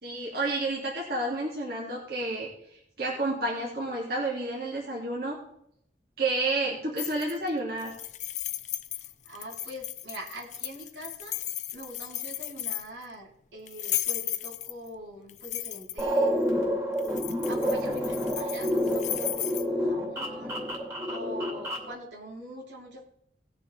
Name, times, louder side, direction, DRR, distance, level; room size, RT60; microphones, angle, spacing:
voice 1, 0.0-5.4 6.2-7.9, right 2 dB, 55° right, -4 dB, 2.4 m, -30 dB
sound 1, 7.0-7.5 7.8-13.0 13.7-14.9 15.3-16.1 17.0-19.7, left 12 dB, 40° left, 0.5 m, -35 dB
voice 2, 9.0-11.4 11.7-16.4 17.4-20.6 21.0-23.0, equal, 85° right, -4 dB, 3.6 m, -43 dB
sound 2, 16.0-21.9, equal, 15° right, 2.6 m, -29 dB
18.0 x 6.8 x 3.3 m, 0.73 s
head